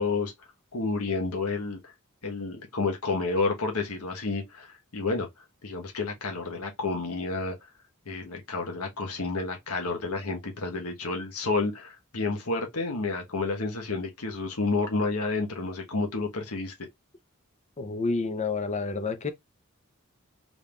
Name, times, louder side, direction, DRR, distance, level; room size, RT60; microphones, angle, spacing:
voice 1, 0.0-1.9 2.2-7.7 8.0-16.7, left 3 dB, 90° left, 1.3 m, -30 dB
voice 2, 17.8-19.3, left 4 dB, 30° left, 0.7 m, -29 dB
3.8 x 3.5 x 2.4 m
head